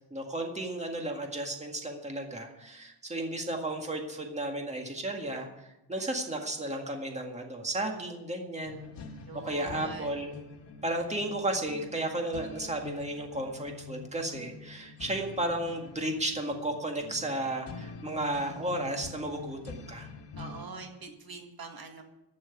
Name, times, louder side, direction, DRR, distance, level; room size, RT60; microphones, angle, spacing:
voice 1, 0.0-8.9 9.4-10.3 10.8-20.1, right 1 dB, 15° right, 2 dB, 1.9 m, -34 dB
sound 1, 8.6-20.6, left 4 dB, 85° left, 1.6 m, -46 dB
voice 2, 9.3-10.2 20.4-22.0, right 4 dB, 55° right, 4 dB, 1.8 m, -44 dB
15.0 x 6.3 x 9.5 m, 0.93 s
wide cardioid pair, 145°, 42 cm